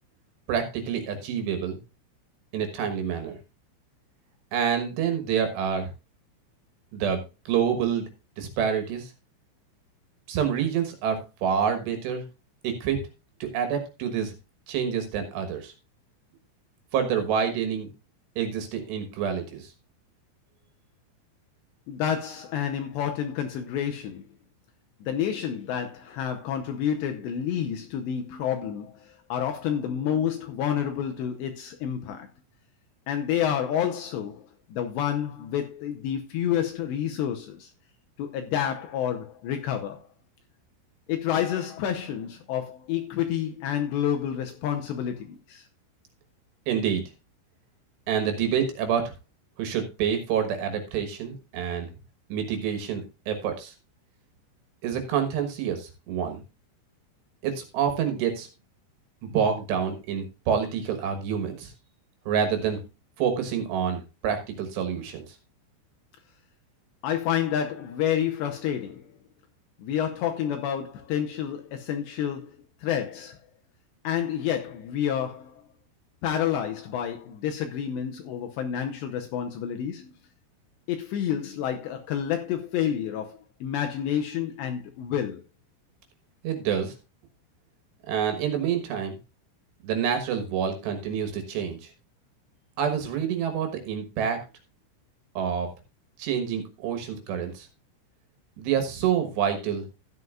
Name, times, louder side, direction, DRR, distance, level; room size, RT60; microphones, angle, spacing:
voice 1, 0.5-1.8 2.5-3.4 4.5-5.9 6.9-8.0 8.4-9.1 10.3-12.2 12.6-13.0 13.4-14.3 14.7-15.7 16.9-17.9 18.4-19.7 46.7-47.0 48.1-49.1 49.6-51.9 52.3-53.7 54.8-56.4 57.4-58.5 59.2-61.7 62.3-62.8 63.2-65.4 86.4-86.9 88.1-89.2 89.8-91.9 92.8-94.4 95.3-95.7 96.2-97.7 98.6-99.8, right 8 dB, 65° right, 3.1 m, -27 dB
voice 2, 21.9-24.2 25.0-32.3 33.1-37.7 38.2-40.1 41.1-45.7 67.0-69.2 69.8-73.4 74.0-75.6 76.2-80.2 80.9-85.4, left 9 dB, 75° left, 2.6 m, -29 dB
13.5 x 9.4 x 2.4 m
omnidirectional pair, 5.8 m